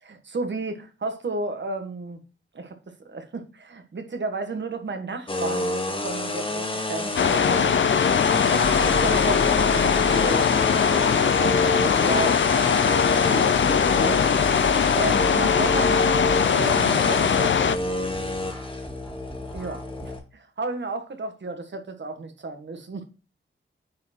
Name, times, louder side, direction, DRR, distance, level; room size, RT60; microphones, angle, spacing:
voice 1, 0.0-2.2 2.5-8.0 8.3-10.6 10.9-12.4 12.8-14.2 14.6-17.6 19.5-23.0, right 3 dB, 60° right, 1.6 m, -33 dB
sound 1, 5.3-20.2, left 1 dB, 25° left, 1.6 m, -29 dB
sound 2, 7.2-17.8, left 7 dB, 65° left, 0.6 m, -21 dB
sound 3, 8.6-20.2, left 1 dB, 5° left, 2.0 m, -35 dB
9.4 x 4.6 x 4.4 m
wide cardioid pair, 105°, 21 cm